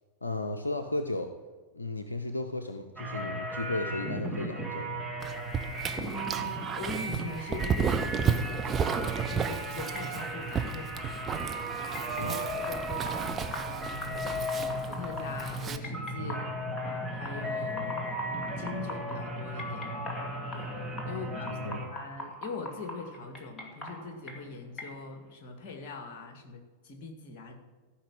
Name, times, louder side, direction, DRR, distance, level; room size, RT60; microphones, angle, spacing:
voice 1, 0.2-1.3 1.7-5.0 12.2-12.4 16.2-16.5 21.0-21.9, left 2 dB, 80° left, 8 dB, 0.7 m, -35 dB
sound 1, 3.0-21.9, right 1 dB, 5° right, 2.2 m, -36 dB
Dog, 5.2-15.8, right 6 dB, 25° right, 0.7 m, -33 dB
voice 2, 6.0-11.9 12.2-12.4 12.7-13.3 13.7-16.5 17.1-19.9 20.5-20.7 21.1-27.6, left 3 dB, 40° left, 5 dB, 2.2 m, -42 dB
sound 2, 10.0-25.3, left 1 dB, 20° left, 2.5 m, -44 dB
14.0 x 5.6 x 7.8 m, 1.4 s
figure-of-eight pair, 90°, 0 cm